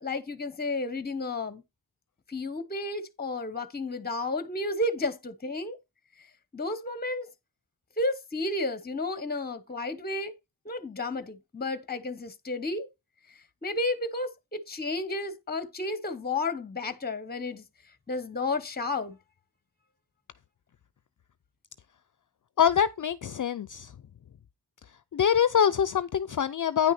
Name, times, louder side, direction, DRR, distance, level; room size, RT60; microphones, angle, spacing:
voice 1, 0.0-1.6 2.3-5.8 6.5-7.3 8.0-10.3 10.6-12.9 13.6-17.6 18.1-19.2, left 2 dB, 25° left, 0.9 m, -32 dB
voice 2, 22.6-23.9 25.1-26.9, left 8 dB, 55° left, 0.5 m, -24 dB
9.4 x 6.2 x 4.1 m
wide cardioid pair, 55°, 37 cm